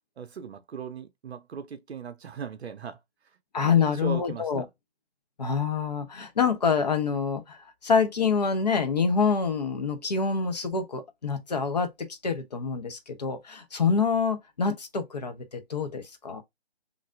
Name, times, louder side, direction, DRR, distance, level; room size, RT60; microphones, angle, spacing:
voice 1, 0.2-3.0 3.6-4.7, right 7 dB, 80° right, 0.6 m, -38 dB
voice 2, 3.5-4.6 5.4-16.4, left 5 dB, 40° left, 0.6 m, -26 dB
3.1 x 2.5 x 2.4 m
figure-of-eight pair, 160°, 32 cm